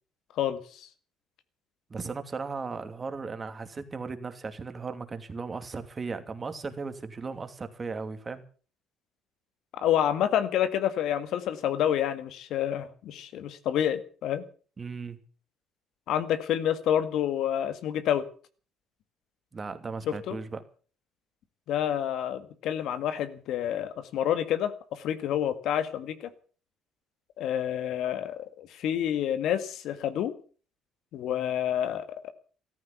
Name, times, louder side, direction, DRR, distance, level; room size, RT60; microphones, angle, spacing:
voice 1, 0.4-0.9 9.7-14.4 16.1-18.3 20.1-20.4 21.7-26.3 27.4-30.3 31.1-32.3, left 10 dB, 65° left, 11 dB, 1.9 m, -28 dB
voice 2, 1.9-8.4 14.8-15.2 19.5-20.6, right 4 dB, 30° right, 9 dB, 2.6 m, -36 dB
14.5 x 14.0 x 7.1 m, 0.40 s
supercardioid pair, 70°, 0 cm